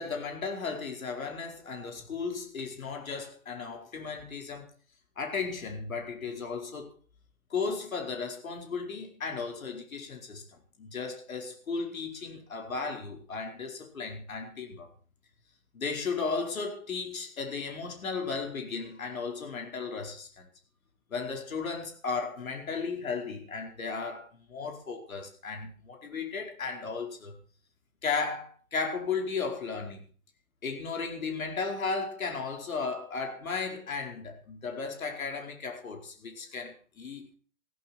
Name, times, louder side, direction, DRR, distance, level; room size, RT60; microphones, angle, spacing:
voice 1, 0.0-4.7 5.2-6.9 7.5-10.4 10.8-14.9 15.7-20.5 21.1-27.4 28.0-30.0 30.6-37.3, left 4 dB, 75° left, 4.9 m, -35 dB
17.5 x 16.0 x 4.5 m
hypercardioid pair, 170°, 41 cm